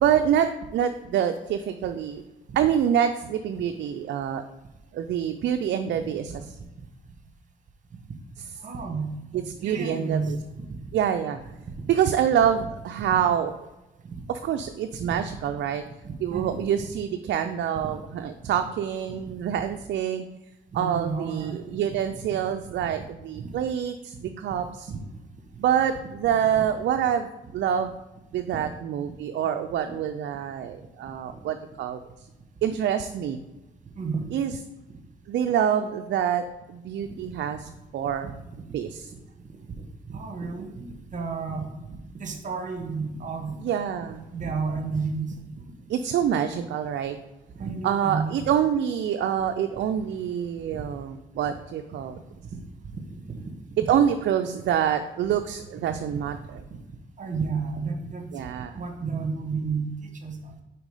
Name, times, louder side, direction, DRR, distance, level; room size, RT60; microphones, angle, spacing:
voice 1, 0.0-2.2 2.6-4.4 4.9-6.6 9.3-10.4 10.9-11.4 11.9-13.5 14.3-15.8 16.2-20.2 20.7-24.9 25.6-27.9 28.3-32.3 32.6-33.4 34.3-34.6 35.3-38.3 38.7-39.1 43.6-44.2 45.9-47.2 47.8-52.2 53.8-56.6 58.3-58.8, right 9 dB, 65° right, 7 dB, 0.4 m, -26 dB
voice 2, 8.6-9.2 9.6-10.8 14.1-14.2 15.0-15.1 16.0-16.9 17.8-18.0 19.1-19.3 20.7-21.7 22.8-22.9 23.3-23.6 24.2-24.3 24.9-25.0 25.5-25.6 26.5-26.6 28.5-28.7 29.0-29.1 29.9-30.0 31.3-31.4 33.9-34.3 37.1-37.4 38.0-38.6 39.1-39.2 39.8-43.6 44.0-45.7 47.5-48.5 51.4-51.6 52.5-52.6 52.9-53.9 55.9-56.2 56.7-56.8 57.2-58.3 58.7-60.5, right 4 dB, 40° right, 5 dB, 1.2 m, -33 dB
5.1 x 4.5 x 4.9 m, 0.99 s
cardioid pair, 90°, 20 cm